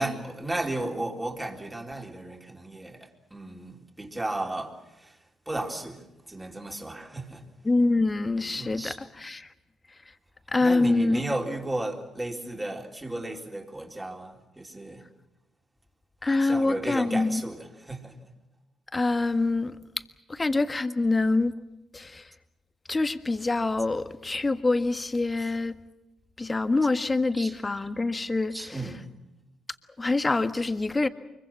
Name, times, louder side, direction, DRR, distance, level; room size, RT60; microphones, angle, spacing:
voice 1, 0.0-5.2 5.5-7.5 8.5-9.0 10.6-15.0 16.4-18.2 27.3-27.8 28.5-29.1, right 2 dB, 15° right, 3.7 m, -34 dB
voice 2, 7.6-9.5 10.5-11.2 16.2-17.4 18.9-19.8 20.3-21.5 21.9-22.3 22.9-25.8 26.4-28.9 30.0-31.1, left 3 dB, 25° left, 1.5 m, -25 dB
24.5 x 23.0 x 7.5 m
hypercardioid pair, 55°, 0 cm